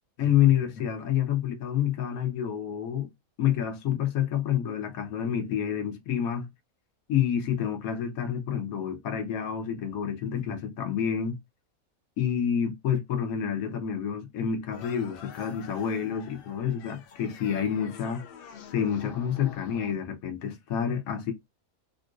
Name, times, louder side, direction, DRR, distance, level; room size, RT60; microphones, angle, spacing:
voice 1, 0.2-3.1 3.4-6.5 7.1-11.4 12.2-18.2 18.7-21.3, left 9 dB, 80° left, 1.1 m, -28 dB
sound 1, 14.7-19.9, left 7 dB, 65° left, 0.6 m, -47 dB
3.7 x 2.5 x 2.3 m
omnidirectional pair, 1.5 m